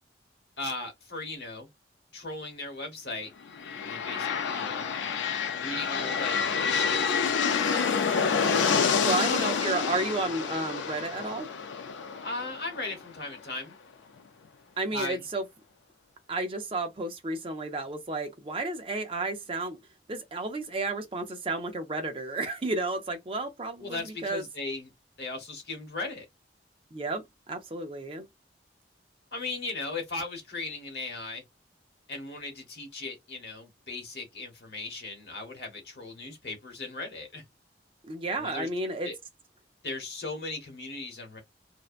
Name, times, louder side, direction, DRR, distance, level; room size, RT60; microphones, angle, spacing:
voice 1, 0.6-1.7 2.1-3.3 3.8-4.9 5.6-6.9 12.2-13.7 14.9-15.2 23.8-24.9 25.2-26.2 29.3-31.4 32.1-37.4 38.4-38.7 39.0-39.1 39.8-41.4, left 3 dB, 65° left, 1.1 m, -37 dB
sound 1, 3.5-13.3, left 6 dB, 90° left, 0.4 m, -28 dB
voice 2, 9.0-11.5 14.8-15.4 16.3-19.8 20.1-24.4 26.9-28.3 38.0-39.1, right 2 dB, 30° right, 0.5 m, -32 dB
2.6 x 2.1 x 2.4 m
head